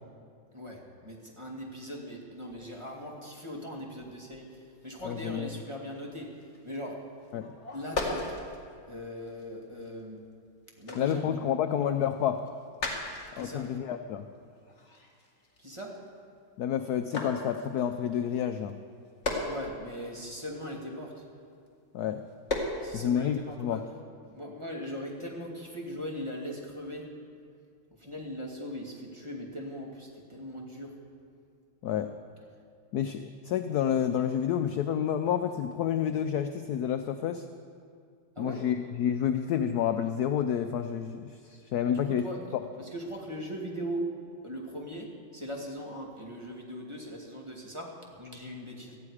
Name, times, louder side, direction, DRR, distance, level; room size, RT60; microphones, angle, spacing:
voice 1, 0.5-7.1 7.7-8.4 8.9-10.2 10.8-11.5 13.3-13.7 15.6-16.0 19.4-21.3 22.8-23.9 24.3-27.1 28.0-31.0 38.4-38.6 41.9-42.5 42.8-49.0, equal, 15° right, -2 dB, 2.2 m, -40 dB
voice 2, 5.0-5.5 7.3-7.5 10.9-12.4 13.3-14.2 16.6-18.8 21.9-22.2 22.9-23.8 31.8-32.1 32.9-37.5 38.4-42.2, left 9 dB, 75° left, 8 dB, 0.9 m, -29 dB
sound 1, 6.4-6.8 7.1-10.3 10.7-16.5 17.1-21.8 22.3-22.9 23.4-23.6, left 2 dB, 35° left, 2.2 m, -38 dB
18.0 x 14.0 x 4.9 m, 2.3 s
omnidirectional pair, 2.2 m